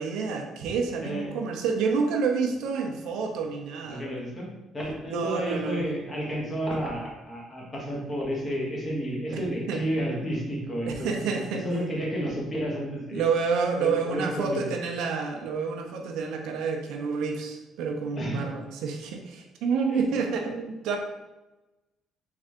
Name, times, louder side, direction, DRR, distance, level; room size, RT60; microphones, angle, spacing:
voice 1, 0.0-4.0 5.1-5.8 6.7-6.8 9.3-9.8 10.9-11.6 13.1-21.0, right 5 dB, 80° right, 3 dB, 0.6 m, -29 dB
voice 2, 1.0-1.3 3.8-13.2 13.8-14.7 18.2-18.5 19.9-20.0, equal, 25° left, -3 dB, 1.4 m, -31 dB
3.7 x 3.3 x 3.6 m, 1.0 s
cardioid pair, 125°, 0 cm